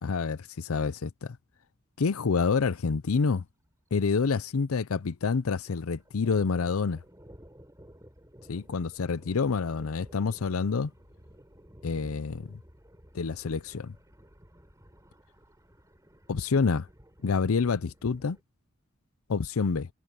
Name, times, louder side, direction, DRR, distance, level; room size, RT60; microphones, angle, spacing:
voice 1, 0.0-1.4 2.0-3.4 3.9-7.0 8.5-10.9 11.8-12.5 13.1-13.9 16.3-16.9 17.2-18.4 19.3-19.9, left 5 dB, 80° left, 0.6 m, -27 dB
Thunder, 2.8-3.0 3.3-3.4 3.7-5.2 5.4-18.4, equal, 15° right, 7.3 m, -55 dB
head